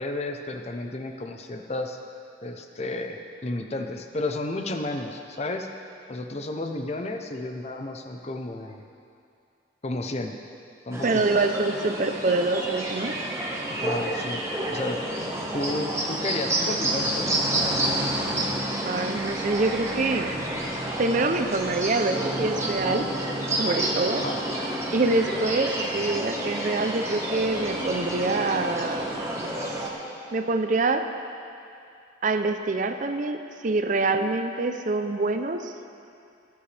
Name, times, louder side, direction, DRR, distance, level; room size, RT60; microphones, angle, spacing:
voice 1, 0.0-2.0 2.4-5.7 6.1-8.8 9.8-10.3 10.9-11.4 13.7-15.1 15.5-17.5 24.1-24.4, left 2 dB, 35° left, 5 dB, 0.7 m, -32 dB
sound 1, 10.9-29.9, right 1 dB, 15° right, 1.3 m, -29 dB
voice 2, 11.0-13.2 18.8-20.3 21.0-23.1 23.6-24.2 24.9-29.1 30.3-31.1 32.2-35.9, right 3 dB, 45° right, 8 dB, 0.5 m, -25 dB
17.5 x 11.5 x 3.4 m, 2.5 s
head